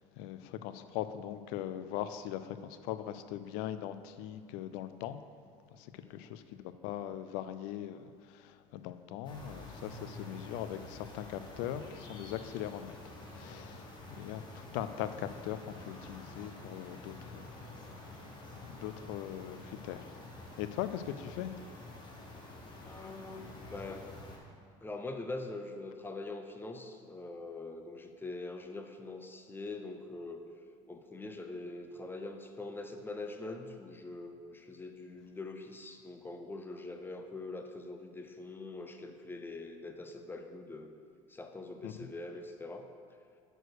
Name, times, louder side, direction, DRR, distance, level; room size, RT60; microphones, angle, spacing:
voice 1, 0.2-5.2 6.1-8.0 8.7-12.9 13.4-13.8 14.1-17.5 18.7-20.1 20.6-21.5 22.8-22.9 41.8-41.9, left 11 dB, 75° left, 11 dB, 0.4 m, -40 dB
voice 2, 6.0-6.3 22.8-24.1 24.8-30.4 30.9-40.9 41.3-42.9, left 2 dB, 15° left, 5 dB, 0.6 m, -43 dB
sound 1, 9.2-24.4, left 2 dB, 30° left, 1.4 m, -49 dB
6.4 x 4.4 x 6.4 m, 2.3 s
supercardioid pair, 115°, 16 cm